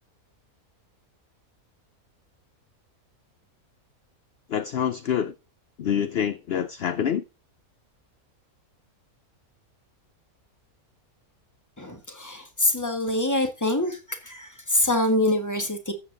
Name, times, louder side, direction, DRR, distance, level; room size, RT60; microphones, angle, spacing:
voice 1, 4.5-5.3 5.8-7.2, left 8 dB, 55° left, 0.7 m, -26 dB
voice 2, 11.8-15.9, left 1 dB, 10° left, 1.6 m, -25 dB
13.0 x 7.1 x 3.9 m
omnidirectional pair, 1.6 m